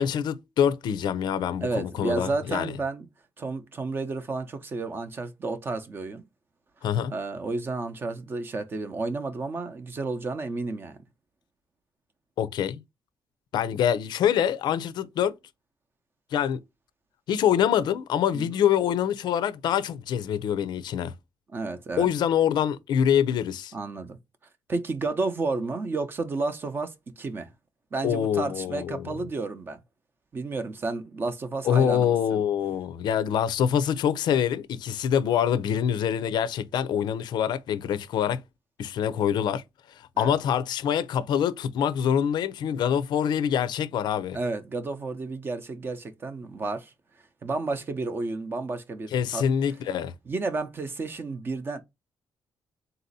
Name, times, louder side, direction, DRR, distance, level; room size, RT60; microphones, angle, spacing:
voice 1, 0.0-2.8 6.8-7.1 12.4-12.8 13.5-15.3 16.3-16.6 17.3-21.1 22.0-23.7 28.0-29.1 31.6-38.4 38.8-39.6 40.0-44.4 49.1-50.1, left 9 dB, 70° left, 0.5 m, -25 dB
voice 2, 1.6-3.1 3.4-6.2 7.1-11.0 18.3-18.5 21.5-22.1 23.7-24.2 24.7-27.5 27.9-29.8 30.3-32.4 40.2-40.3 44.3-46.9 47.4-49.5 50.3-51.8, right 3 dB, 30° right, 0.6 m, -31 dB
4.0 x 2.7 x 4.0 m
cardioid pair, 175°, 8 cm